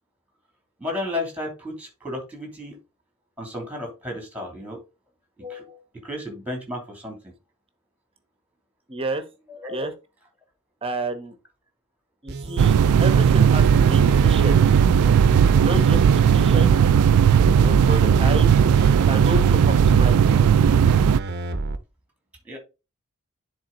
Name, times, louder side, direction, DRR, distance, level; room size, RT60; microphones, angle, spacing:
voice 1, 0.8-2.7 3.4-4.8 5.4-7.2 9.5-9.9 18.2-18.3 22.4-22.6, left 1 dB, 5° right, 2.9 m, -33 dB
voice 2, 8.9-9.2 9.7-9.9 10.8-11.3 12.2-14.8 15.6-16.7 17.5-18.5 19.1-20.3, right 1 dB, 25° right, 1.1 m, -30 dB
sound 1, 12.3-21.8, right 2 dB, 50° right, 0.7 m, -30 dB
sound 2, 12.6-21.2, right 8 dB, 85° right, 0.3 m, -16 dB
10.0 x 4.1 x 3.9 m
head